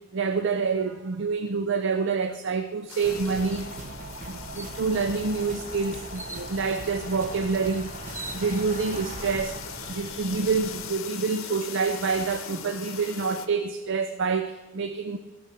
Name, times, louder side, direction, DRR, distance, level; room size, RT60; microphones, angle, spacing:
voice 1, 0.1-3.7 4.3-7.9 8.3-15.2, right 4 dB, 60° right, 0.5 m, -27 dB
sound 1, 2.9-13.5, left 8 dB, 75° left, 0.8 m, -41 dB
sound 2, 3.0-10.9, right 2 dB, 35° right, 0.9 m, -40 dB
sound 3, 3.5-3.7 4.1-4.2 4.6-5.1 6.1-6.5 7.6-7.7 7.9-8.9, right 3 dB, 15° right, 0.5 m, -41 dB
14.0 x 7.0 x 6.0 m
head